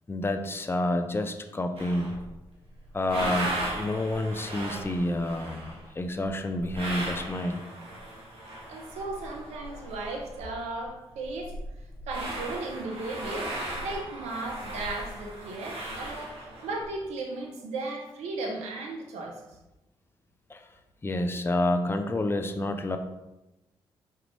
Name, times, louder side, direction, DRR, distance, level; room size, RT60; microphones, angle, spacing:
voice 1, 0.1-2.1 2.9-7.6 20.5-20.7 21.0-23.0, left 1 dB, 20° left, 7 dB, 0.5 m, -29 dB
sound 1, 1.7-2.3 2.7-10.5 10.8-10.9 11.1-16.9, right 1 dB, 55° right, 1.5 m, -37 dB
voice 2, 8.7-11.6 12.1-13.5 13.8-19.4, right 2 dB, 75° right, 1 dB, 0.8 m, -36 dB
5.0 x 3.3 x 3.1 m, 0.97 s
hypercardioid pair, 45°, 11 cm